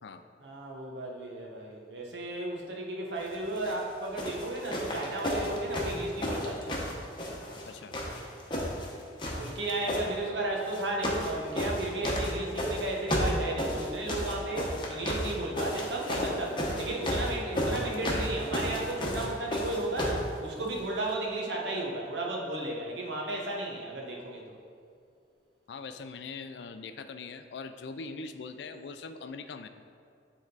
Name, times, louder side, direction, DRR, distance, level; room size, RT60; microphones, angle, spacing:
voice 1, 0.4-6.8 9.3-24.6, right 2 dB, 75° right, -1 dB, 1.0 m, -34 dB
sound 1, 3.5-3.8 4.2-7.7 7.9-8.9 9.2-10.0 10.7-11.3 11.6-20.3 21.1-21.2, equal, 25° left, 0.9 m, -32 dB
voice 2, 7.6-8.0 25.7-29.7, left 4 dB, 70° left, 9 dB, 0.4 m, -42 dB
9.2 x 3.6 x 3.9 m, 2.3 s
head